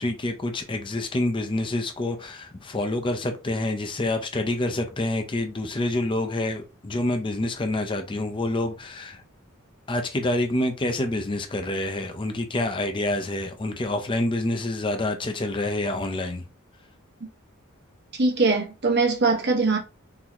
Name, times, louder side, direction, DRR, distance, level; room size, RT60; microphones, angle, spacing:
voice 1, 0.0-9.2 9.9-16.4, left 1 dB, 25° left, 0.5 m, -27 dB
voice 2, 18.2-19.8, right 3 dB, 50° right, 1.0 m, -21 dB
3.9 x 2.8 x 2.9 m
head